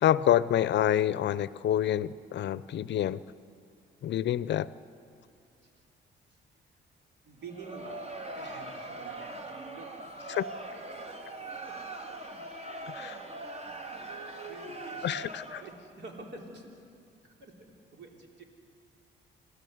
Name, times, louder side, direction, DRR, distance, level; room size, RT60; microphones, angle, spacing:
voice 1, 0.0-3.2 4.0-4.7 10.3-10.4 12.9-13.2 15.0-15.6, left 11 dB, 65° left, 17 dB, 0.6 m, -27 dB
voice 2, 7.2-8.0 8.3-9.9 10.7-10.8 11.5-12.2 13.9-16.7 17.2-18.4, right 3 dB, 65° right, 1 dB, 3.6 m, -49 dB
Crowd, 7.4-15.9, right 2 dB, 30° right, 1.9 m, -41 dB
26.5 x 16.5 x 7.9 m, 2.4 s
cardioid pair, 90°, 20 cm